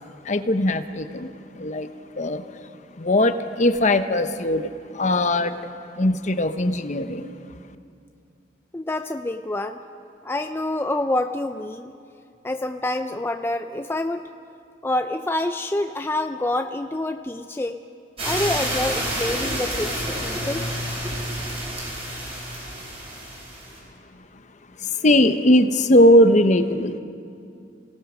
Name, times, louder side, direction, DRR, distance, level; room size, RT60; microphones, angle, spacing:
voice 1, 0.2-1.9 2.1-2.4 3.0-5.5 6.0-7.4 24.8-27.0, left 1 dB, 40° left, 9 dB, 0.9 m, -19 dB
voice 2, 8.7-9.8 10.2-11.9 12.4-14.2 14.8-17.8 18.2-20.7, left 1 dB, 15° left, 7 dB, 0.5 m, -27 dB
sound 1, 18.2-23.8, right 1 dB, 35° right, 7.2 m, -29 dB
27.5 x 18.0 x 6.2 m, 2.4 s
head